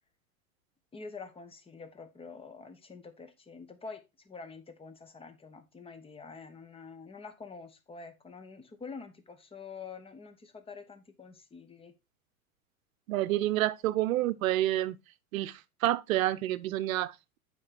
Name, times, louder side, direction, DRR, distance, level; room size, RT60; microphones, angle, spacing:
voice 1, 0.9-11.9, left 4 dB, 15° left, 1.1 m, -47 dB
voice 2, 13.1-15.0 15.3-17.4, right 14 dB, 70° right, 0.8 m, -29 dB
7.7 x 5.4 x 4.0 m
hypercardioid pair, 110°, 42 cm